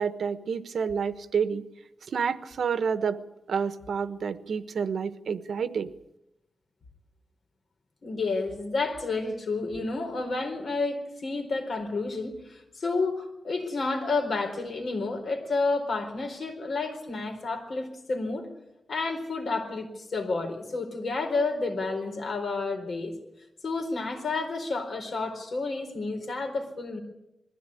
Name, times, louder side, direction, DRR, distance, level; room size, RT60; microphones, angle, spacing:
voice 1, 0.0-1.6 2.1-3.2 3.5-5.9, right 6 dB, 80° right, 12 dB, 1.2 m, -29 dB
voice 2, 8.0-18.5 18.9-23.2 23.6-27.0, left 3 dB, 60° left, 4 dB, 4.3 m, -30 dB
22.0 x 15.5 x 9.9 m, 0.88 s
wide cardioid pair, 145°, 0 cm